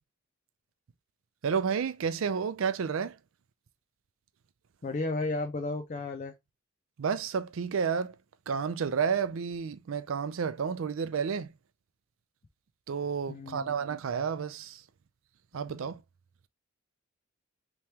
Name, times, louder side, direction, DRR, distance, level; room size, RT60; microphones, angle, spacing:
voice 1, 1.4-3.2 7.0-8.1 8.5-11.5 12.9-14.8 15.5-16.0, right 6 dB, 70° right, 0.4 m, -31 dB
voice 2, 4.8-6.3 13.3-13.8, left 2 dB, 35° left, 0.4 m, -33 dB
3.4 x 3.0 x 2.8 m
head